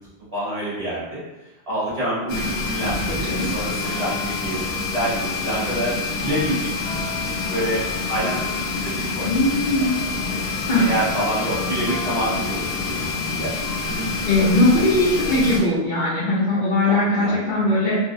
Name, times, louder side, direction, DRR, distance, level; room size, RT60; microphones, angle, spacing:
voice 1, 0.3-1.2 1.7-5.9 6.2-6.7 7.2-9.9 10.3-10.4 10.8-13.5 13.8-14.5 15.1-15.6 16.8-17.5, right 1 dB, 35° right, -9 dB, 0.9 m, -28 dB
sound 1, 2.3-15.6, left 4 dB, 80° left, 0.9 m, -27 dB
voice 2, 3.1-3.5 9.2-9.9 10.7-10.9 14.3-18.0, left 1 dB, 55° left, -9 dB, 0.7 m, -20 dB
2.5 x 2.0 x 2.5 m, 1.0 s
omnidirectional pair, 1.1 m